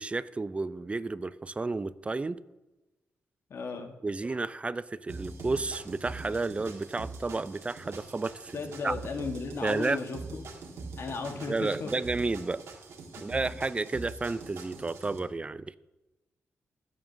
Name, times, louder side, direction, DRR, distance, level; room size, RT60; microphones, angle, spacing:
voice 1, 0.0-2.4 4.0-8.6 8.8-8.9 9.6-10.0 11.5-12.6 13.2-15.8, right 3 dB, 25° right, 16 dB, 0.4 m, -31 dB
voice 2, 3.5-3.9 8.5-10.4 11.0-11.9, left 4 dB, 70° left, 5 dB, 1.3 m, -35 dB
sound 1, 5.1-15.2, right 3 dB, 85° right, 1.5 m, -43 dB
16.0 x 7.4 x 2.7 m, 1.0 s
cardioid pair, 70°, 5 cm